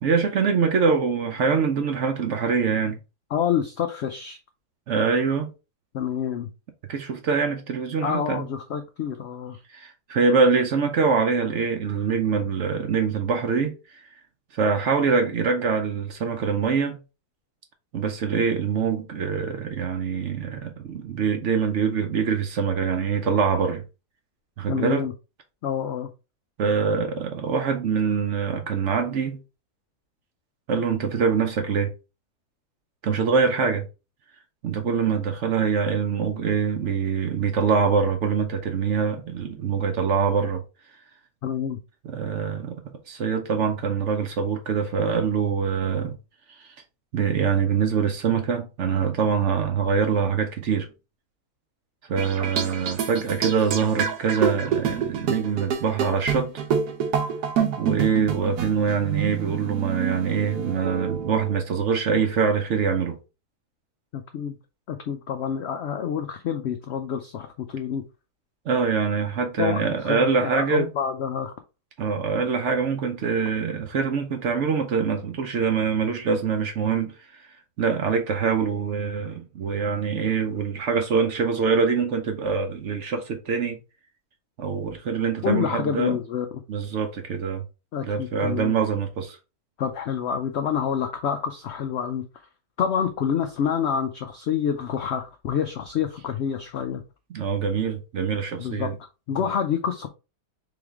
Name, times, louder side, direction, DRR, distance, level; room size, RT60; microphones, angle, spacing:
voice 1, 0.0-3.0 4.9-5.5 6.9-8.4 9.7-14.0 14.5-17.0 17.9-23.8 24.6-25.1 26.6-29.4 30.7-31.9 33.0-33.9 34.6-40.6 42.0-46.2 46.6-46.7 47.1-50.9 52.1-56.6 57.8-63.2 68.7-70.9 72.0-77.5 77.8-83.8 84.6-86.2 86.7-87.6 88.0-89.4 97.3-99.0, right 6 dB, 60° right, 0.8 m, -24 dB
voice 2, 3.3-4.4 5.9-6.5 8.0-9.6 24.7-25.1 25.6-26.1 41.4-41.8 64.1-64.6 64.9-68.0 69.6-71.5 85.4-86.5 87.9-88.7 89.8-92.3 92.8-97.0 98.6-100.1, left 8 dB, 80° left, 0.6 m, -27 dB
sound 1, 52.2-61.6, right 7 dB, 80° right, 1.4 m, -27 dB
3.8 x 3.4 x 3.5 m
omnidirectional pair, 1.7 m